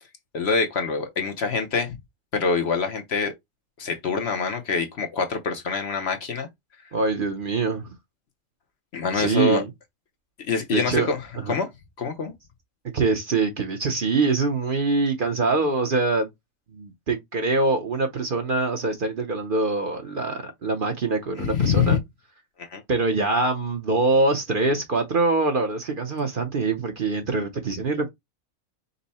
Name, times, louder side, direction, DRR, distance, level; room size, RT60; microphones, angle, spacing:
voice 1, 0.3-2.0 2.3-3.3 3.8-6.5 8.9-9.6 10.4-11.2 11.5-11.7 12.0-12.3 21.4-22.0 22.6-22.8, left 5 dB, 55° left, 0.9 m, -25 dB
voice 2, 6.9-7.9 9.1-9.7 10.7-11.5 12.9-16.3 16.7-22.0 22.9-28.1, right 3 dB, 50° right, 0.8 m, -24 dB
5.4 x 2.1 x 4.1 m
omnidirectional pair, 1.4 m